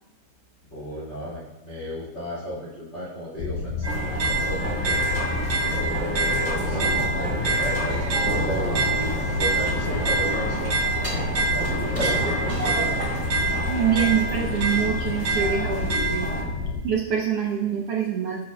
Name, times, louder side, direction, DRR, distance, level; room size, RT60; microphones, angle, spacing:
voice 1, 0.7-5.0 5.7-11.0 11.5-12.9, equal, 25° left, -8 dB, 2.1 m, -34 dB
sound 1, 3.4-16.8, left 4 dB, 85° left, 1.4 m, -31 dB
sound 2, 3.8-16.4, right 2 dB, 60° right, 3.8 m, -26 dB
sound 3, 9.0-10.2 11.0-13.4 13.8-13.9, right 1 dB, 15° right, 2.9 m, -39 dB
voice 2, 13.7-16.5 16.8-18.4, right 8 dB, 80° right, -1 dB, 1.3 m, -25 dB
17.5 x 8.7 x 2.4 m, 1.0 s
omnidirectional pair, 4.0 m